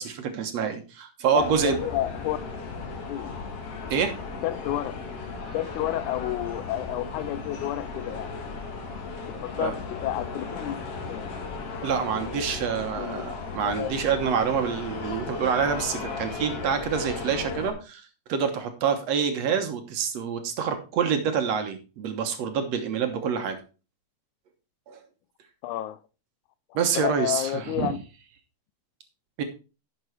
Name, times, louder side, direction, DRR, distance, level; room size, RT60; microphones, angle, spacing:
voice 1, 0.0-1.8 3.9-4.2 9.6-9.7 11.8-23.6 24.9-25.0 26.7-27.9 29.4-29.5, right 6 dB, 65° right, 2.2 m, -27 dB
voice 2, 1.3-2.4 3.1-3.3 4.4-5.0 5.5-8.3 9.3-10.8 11.1-11.3 13.0-13.2 13.6-13.9 25.6-26.0 26.7-28.0, left 13 dB, 80° left, 2.1 m, -30 dB
sound 1, 1.4-17.7, left 4 dB, 55° left, 2.5 m, -36 dB
11.0 x 6.8 x 4.6 m
omnidirectional pair, 3.5 m